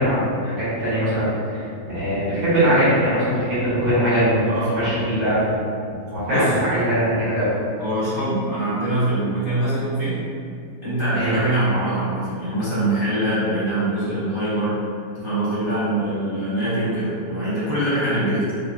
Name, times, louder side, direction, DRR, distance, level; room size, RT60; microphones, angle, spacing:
voice 1, 0.0-1.3 1.9-4.5 4.7-5.6 6.1-7.5 11.1-11.4, equal, 75° right, -12 dB, 1.8 m, -21 dB
voice 2, 4.5-5.0 6.3-6.5 7.8-10.2 10.8-14.8 15.1-18.5, right 1 dB, 50° right, -13 dB, 0.3 m, -23 dB
3.5 x 2.2 x 2.4 m, 2.3 s
omnidirectional pair, 1.7 m